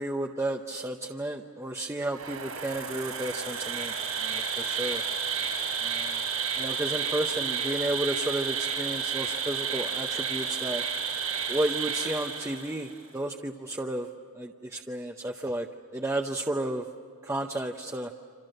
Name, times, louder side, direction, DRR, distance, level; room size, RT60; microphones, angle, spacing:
voice 1, 0.0-5.0 5.8-6.3 6.6-10.8 11.5-14.1 14.3-15.7 15.9-16.9 17.2-18.1, right 1 dB, 15° right, 2 dB, 0.7 m, -32 dB
Insect, 2.1-12.9, right 6 dB, 80° right, 7.7 m, -31 dB
27.5 x 27.5 x 6.6 m, 2.3 s
head